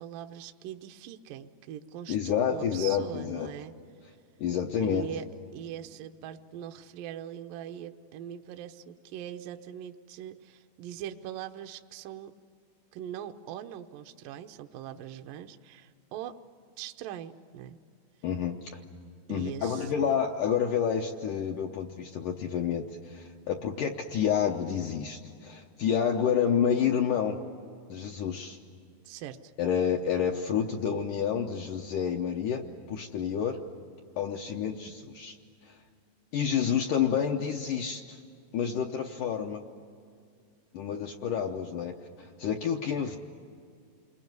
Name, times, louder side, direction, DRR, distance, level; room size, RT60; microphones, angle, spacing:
voice 1, 0.0-3.7 4.8-5.3 5.5-12.3 12.9-16.4 16.8-17.8 19.3-20.2 29.0-29.5, right 10 dB, 75° right, 6 dB, 2.1 m, -41 dB
voice 2, 2.1-3.5 4.4-5.1 18.2-18.8 19.3-27.4 27.9-28.6 29.6-32.6 32.9-33.6 34.2-35.4 35.6-35.8 36.3-38.2 38.5-39.6 40.7-43.2, left 8 dB, 75° left, 2 dB, 2.0 m, -29 dB
28.5 x 22.0 x 9.4 m, 2.3 s
omnidirectional pair, 4.8 m